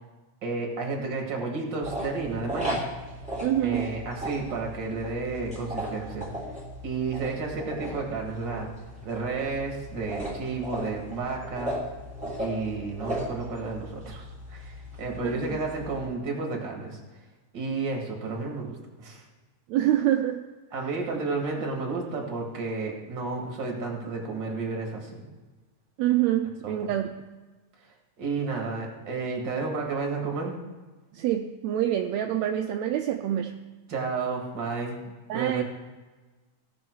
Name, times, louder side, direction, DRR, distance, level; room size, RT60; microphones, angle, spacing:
voice 1, 0.4-2.8 3.6-6.3 6.8-8.7 9.0-11.8 12.4-14.7 15.0-17.0 17.5-19.2 20.7-25.2 26.6-26.9 28.2-30.5 33.9-35.0 35.3-35.6, right 4 dB, 40° right, 1 dB, 2.3 m, -31 dB
sound 1, 1.8-16.0, equal, ahead, 2.6 m, -37 dB
voice 2, 3.4-3.9 15.2-15.4 19.7-20.4 26.0-27.2 31.1-33.6 35.3-35.6, right 12 dB, 80° right, 4 dB, 1.7 m, -26 dB
17.5 x 6.4 x 4.7 m, 1.3 s
omnidirectional pair, 3.4 m